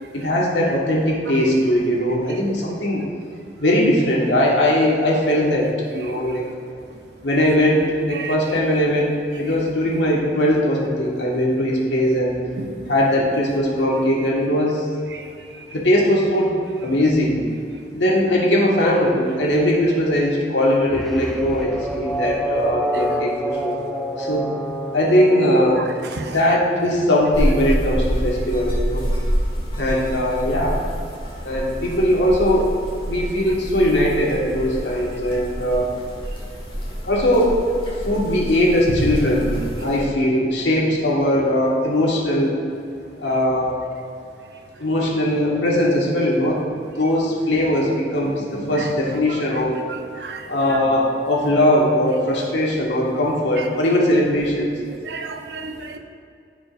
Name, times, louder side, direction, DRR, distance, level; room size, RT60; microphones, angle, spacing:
voice 1, 0.1-3.0 3.6-6.5 7.2-12.4 12.9-14.9 15.7-16.6 16.8-17.4 17.9-23.8 24.2-24.5 24.9-25.9 26.2-29.0 29.8-30.8 31.4-32.7 33.1-35.9 37.0-37.6 38.0-39.5 39.8-42.6 43.2-43.7 44.8-49.8 50.4-54.7, left 1 dB, 90° left, -4 dB, 1.6 m, -20 dB
voice 2, 12.6-12.9 15.1-15.2 23.1-23.2 26.0-26.3 49.9-50.8 53.6-53.7 55.0-56.0, right 4 dB, 70° right, 5 dB, 0.7 m, -33 dB
sound 1, 20.9-26.4, right 1 dB, ahead, 0.4 m, -27 dB
sound 2, 27.3-40.1, equal, 30° left, 1.7 m, -27 dB
13.5 x 5.1 x 2.5 m, 2.5 s
head